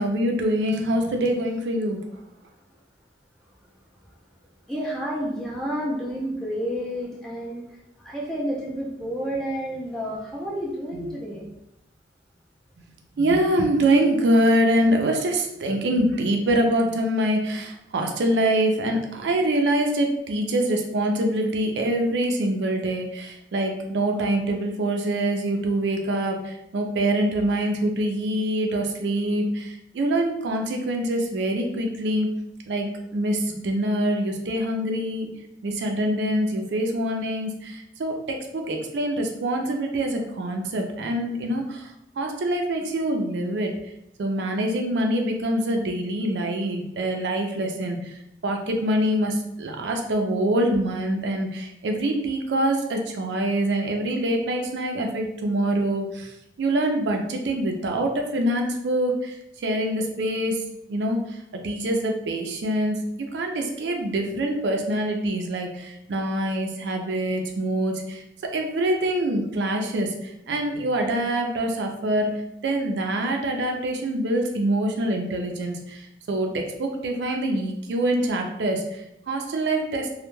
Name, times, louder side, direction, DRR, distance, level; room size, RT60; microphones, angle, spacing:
voice 1, 0.0-2.0 10.9-11.1 13.2-32.3 32.7-35.3 35.6-43.7 44.2-48.2 48.4-60.6 60.9-63.0 63.3-68.2 68.5-72.3 72.6-80.1, right 1 dB, 85° right, 3 dB, 0.4 m, -25 dB
voice 2, 4.7-11.5, equal, 5° left, -5 dB, 0.4 m, -30 dB
2.1 x 2.1 x 3.0 m, 0.81 s
head